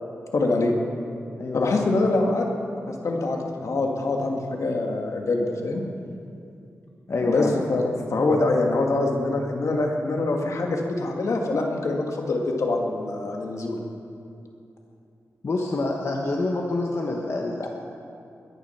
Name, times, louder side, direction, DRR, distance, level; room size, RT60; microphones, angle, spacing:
voice 1, 0.3-0.7 1.5-2.5 2.9-5.8 7.2-13.8, left 2 dB, 75° left, 1 dB, 2.1 m, -24 dB
voice 2, 1.4-1.8 7.1-7.6 15.4-17.7, left 2 dB, 55° left, 0 dB, 1.3 m, -26 dB
21.5 x 11.0 x 5.9 m, 2.7 s
wide cardioid pair, 95°, 5 cm